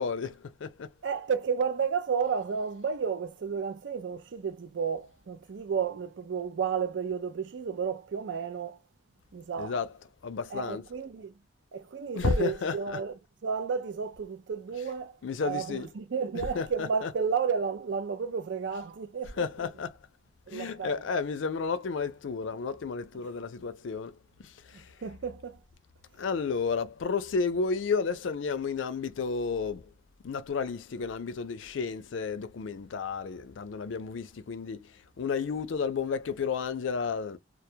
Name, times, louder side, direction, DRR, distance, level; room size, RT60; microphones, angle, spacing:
voice 1, 0.0-0.9 9.6-9.9 10.2-10.8 12.2-13.0 15.2-15.9 16.5-17.1 19.4-20.0 20.5-24.2 24.4-24.9 26.2-29.9 30.2-37.4, left 5 dB, 80° left, 0.4 m, -32 dB
voice 2, 1.0-8.8 9.3-9.8 10.5-11.3 11.7-13.1 13.4-19.4 20.5-21.0 25.0-25.6, right 6 dB, 70° right, 0.4 m, -32 dB
2.1 x 2.0 x 2.8 m
head